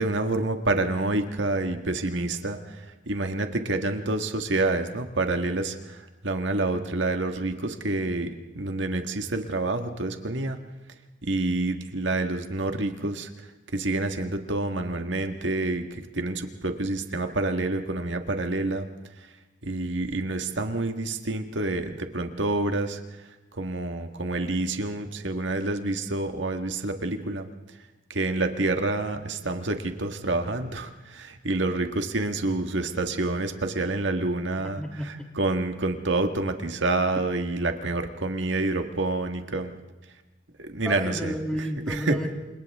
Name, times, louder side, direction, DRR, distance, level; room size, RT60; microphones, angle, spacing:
voice 1, 0.0-10.6 11.2-13.3 13.7-18.8 19.6-23.0 23.5-27.5 28.1-34.8 35.4-39.7 40.6-41.3 41.9-42.1, right 2 dB, 75° right, 6 dB, 1.7 m, -28 dB
voice 2, 34.8-35.3 40.8-42.3, equal, 5° left, 1 dB, 2.8 m, -32 dB
29.0 x 27.0 x 3.6 m, 1.1 s
head